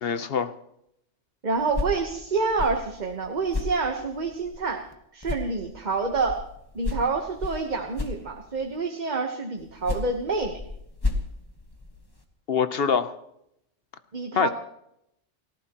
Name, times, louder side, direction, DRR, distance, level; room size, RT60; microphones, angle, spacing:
voice 1, 0.0-0.5 12.5-13.1 14.3-14.5, left 6 dB, 55° left, 12 dB, 1.0 m, -24 dB
voice 2, 1.4-4.8 5.1-6.4 6.7-10.6 14.1-14.5, right 4 dB, 40° right, 3 dB, 1.2 m, -27 dB
sound 1, 1.5-4.9 5.2-8.8 9.6-12.2, left 3 dB, 20° left, 1.4 m, -34 dB
29.5 x 14.5 x 3.0 m, 0.78 s
omnidirectional pair, 1.2 m